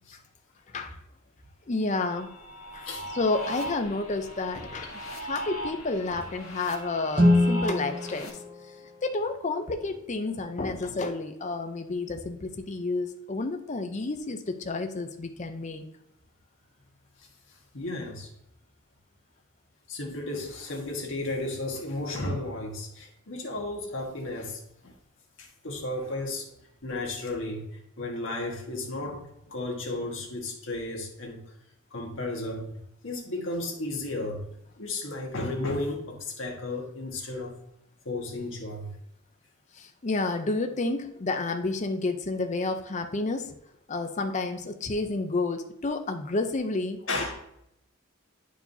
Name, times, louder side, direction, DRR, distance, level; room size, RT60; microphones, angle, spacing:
voice 1, 1.7-2.3 2.7-2.9 3.1-8.4 9.0-15.8 39.7-43.5 43.9-47.0, left 3 dB, 35° left, 7 dB, 0.5 m, -30 dB
sound 1, 2.1-8.3, right 1 dB, 90° left, 1.9 m, -39 dB
Guitar, 7.1-9.7, left 1 dB, 25° right, 0.8 m, -25 dB
voice 2, 17.5-18.3 19.9-24.9 25.4-26.5 26.8-31.4 31.9-32.7 33.0-34.5 34.8-37.6 38.0-38.9 47.0-47.3, left 2 dB, 60° left, 0 dB, 1.5 m, -34 dB
10.5 x 4.7 x 2.7 m, 0.79 s
head